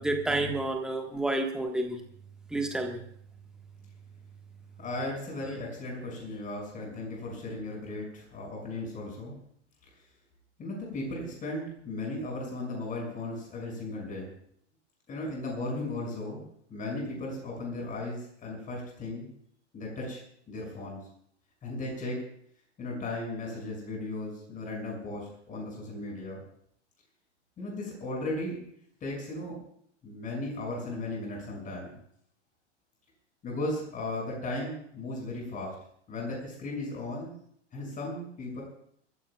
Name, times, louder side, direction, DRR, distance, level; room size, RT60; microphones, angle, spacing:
voice 1, 0.0-2.0 2.5-3.0, right 2 dB, ahead, 4 dB, 1.5 m, -29 dB
voice 2, 4.8-9.4 10.6-14.3 15.1-16.4 16.7-19.3 19.7-21.0 21.6-22.2 22.8-26.4 27.6-28.6 29.0-29.6 30.0-32.0 33.4-35.7 36.1-37.3 37.7-38.6, left 2 dB, 20° left, -1 dB, 6.6 m, -36 dB
28.5 x 14.5 x 2.4 m, 0.67 s
figure-of-eight pair, 100°, 36 cm